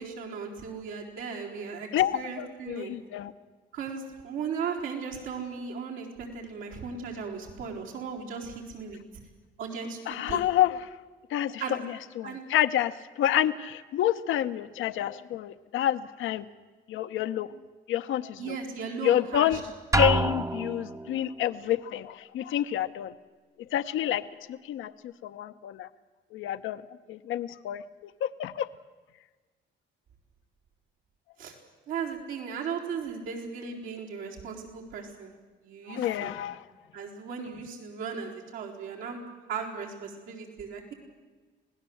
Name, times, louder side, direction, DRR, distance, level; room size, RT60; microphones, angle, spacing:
voice 1, 0.0-1.9 2.1-2.9 3.7-9.0 9.6-10.4 11.6-11.8 12.2-12.4 18.4-19.6 31.4-31.5 31.9-35.3 35.6-36.3 36.9-39.2 39.5-40.9, right 6 dB, 90° right, -1 dB, 4.2 m, -36 dB
voice 2, 1.9-3.3 10.1-10.9 11.3-16.5 16.9-17.5 17.9-18.6 19.0-19.6 19.9-23.1 23.7-25.9 26.3-26.8 27.1-27.8 28.2-28.7 35.9-36.6, left 11 dB, 85° left, 10 dB, 0.9 m, -28 dB
Drum, 19.9-21.1, right 2 dB, 15° right, 0.7 m, -26 dB
26.0 x 18.5 x 7.9 m, 1.4 s
cardioid pair, 90°, 20 cm